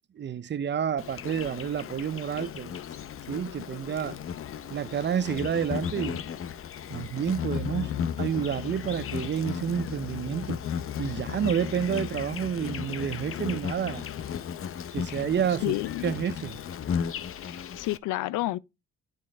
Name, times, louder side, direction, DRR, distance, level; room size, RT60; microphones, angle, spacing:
voice 1, 0.1-2.8 3.3-4.2 4.7-6.2 6.9-10.6 11.0-14.1 14.9-15.8 16.0-16.6, right 8 dB, 35° right, 0.6 m, -29 dB
Insect, 1.0-18.0, left 8 dB, 45° left, 0.6 m, -35 dB
voice 2, 15.6-16.1 17.4-18.6, left 16 dB, 85° left, 0.5 m, -30 dB
9.0 x 5.4 x 3.7 m
cardioid pair, 90°, 30 cm